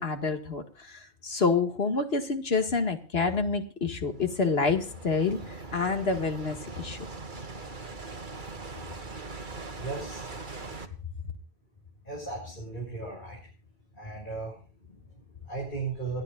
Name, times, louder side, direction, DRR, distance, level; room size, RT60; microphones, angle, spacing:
voice 1, 0.0-7.1, left 4 dB, 65° left, 6 dB, 2.2 m, -28 dB
sound 1, 4.0-10.9, right 3 dB, 50° right, 1.8 m, -41 dB
voice 2, 9.8-10.2 12.0-13.4 13.9-16.2, right 3 dB, 50° left, -2 dB, 6.3 m, -37 dB
29.5 x 10.5 x 2.4 m, 0.36 s
omnidirectional pair, 1.1 m